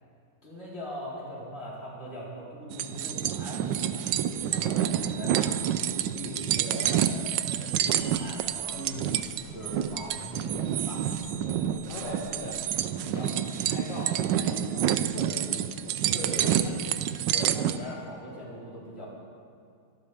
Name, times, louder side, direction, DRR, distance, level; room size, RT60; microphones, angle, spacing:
voice 1, 0.4-5.6 6.1-8.8 9.5-11.0 12.0-12.2 15.1-15.3 16.1-16.9 17.3-19.1, equal, 30° left, -7 dB, 4.5 m, -40 dB
sound 1, 2.7-17.8, right 10 dB, 70° right, 1.2 m, -28 dB
voice 2, 4.5-5.2 8.7-9.3 11.4-15.3 15.8-16.3, left 1 dB, 45° left, -2 dB, 1.7 m, -42 dB
sound 2, 7.6-12.9, left 1 dB, 65° left, 3.2 m, -52 dB
23.5 x 13.0 x 3.5 m, 2.4 s
omnidirectional pair, 2.3 m